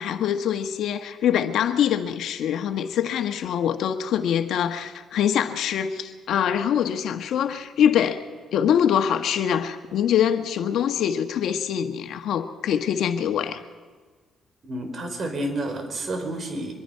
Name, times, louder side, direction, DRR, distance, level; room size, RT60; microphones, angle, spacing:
voice 1, 0.0-8.2 8.5-13.6, left 9 dB, 75° left, 7 dB, 1.4 m, -24 dB
voice 2, 14.6-16.7, right 1 dB, 45° right, 6 dB, 4.5 m, -30 dB
23.5 x 22.5 x 5.7 m, 1.4 s
cardioid pair, 90°, 0 cm